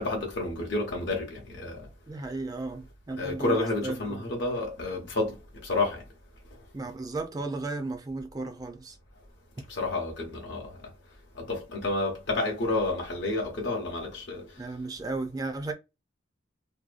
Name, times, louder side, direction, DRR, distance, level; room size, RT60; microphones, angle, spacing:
voice 1, 0.0-1.9 3.2-5.4 5.6-6.0 9.7-10.9 11.4-14.4, left 2 dB, 60° left, 0.7 m, -30 dB
voice 2, 2.1-4.3 6.7-9.0 14.6-15.7, right 3 dB, 20° right, 0.3 m, -34 dB
2.7 x 2.2 x 2.3 m
head